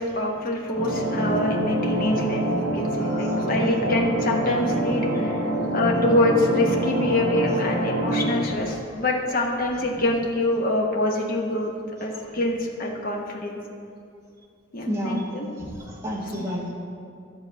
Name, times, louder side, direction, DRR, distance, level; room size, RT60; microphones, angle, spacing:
voice 1, 0.0-5.4 5.7-11.7 12.0-13.6 14.7-15.7, left 1 dB, 40° left, -1 dB, 1.1 m, -25 dB
sound 1, 0.7-8.3, right 1 dB, 30° right, 2.2 m, -26 dB
voice 2, 3.0-3.4 8.9-9.0 12.1-12.3 14.9-15.3 15.9-16.7, equal, 15° right, -3 dB, 1.4 m, -31 dB
12.0 x 4.1 x 7.5 m, 2.4 s
head